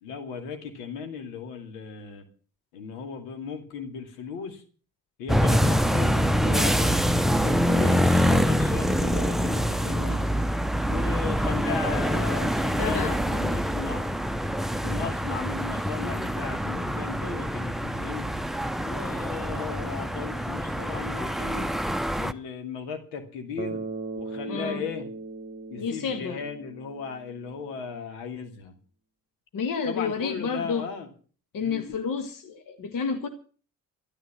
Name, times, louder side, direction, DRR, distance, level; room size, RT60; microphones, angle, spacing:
voice 1, 0.0-2.2 2.7-4.6 5.2-7.0 7.4-10.2 10.8-14.1 14.8-18.3 18.8-21.7 22.2-23.8 24.1-25.1 25.7-28.8 29.8-31.1 31.6-31.9, left 6 dB, 70° left, 2.6 m, -36 dB
sound 1, 5.3-22.3, equal, ahead, 0.9 m, -25 dB
voice 2, 12.8-13.2 24.5-24.8 25.8-26.4 29.5-30.9 31.5-33.3, left 5 dB, 45° left, 1.8 m, -30 dB
Bass guitar, 23.6-27.8, right 3 dB, 25° right, 1.4 m, -38 dB
13.0 x 11.5 x 7.4 m
figure-of-eight pair, 45°, 46 cm